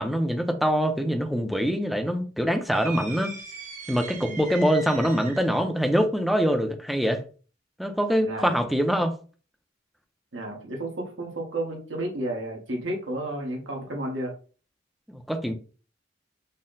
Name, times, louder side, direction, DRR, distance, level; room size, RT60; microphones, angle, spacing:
voice 1, 0.0-3.3 3.9-7.2 7.8-9.1 15.1-15.5, equal, ahead, 0.4 m, -24 dB
sound 1, 2.7-5.6, right 4 dB, 45° right, 0.7 m, -40 dB
voice 2, 4.1-4.4 8.2-8.6 10.3-14.3, right 1 dB, 80° right, 1.1 m, -32 dB
4.1 x 2.0 x 3.8 m
head